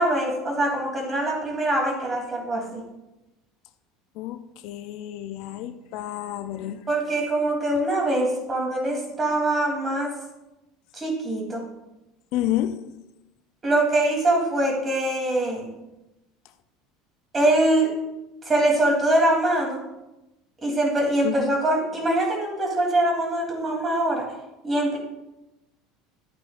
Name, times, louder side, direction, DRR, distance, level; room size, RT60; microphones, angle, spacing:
voice 1, 0.0-2.8 6.9-10.1 10.9-11.6 13.6-15.7 17.3-17.9 18.4-19.8 20.6-24.3 24.6-25.0, right 1 dB, 25° right, 1 dB, 3.2 m, -23 dB
voice 2, 4.2-6.8 12.3-12.8 21.2-21.5, left 13 dB, 65° left, 10 dB, 0.5 m, -30 dB
11.5 x 8.7 x 2.5 m, 0.97 s
hypercardioid pair, 80°, 0 cm